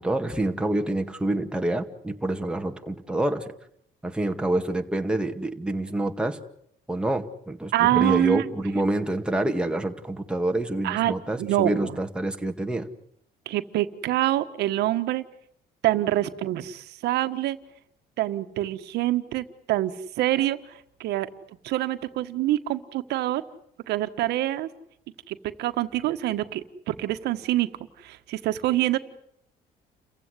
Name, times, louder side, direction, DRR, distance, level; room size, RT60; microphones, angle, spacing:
voice 1, 0.0-3.5 4.0-6.4 6.9-12.9, right 1 dB, 5° right, 4 dB, 2.0 m, -27 dB
voice 2, 7.7-8.4 10.8-12.0 13.4-15.2 15.8-17.6 18.2-20.6 21.0-21.3 21.6-23.4 23.9-24.7 25.3-27.7 28.0-29.0, right 15 dB, 80° right, 9 dB, 1.6 m, -25 dB
29.5 x 16.0 x 9.8 m, 0.72 s
cardioid pair, 110°, 17 cm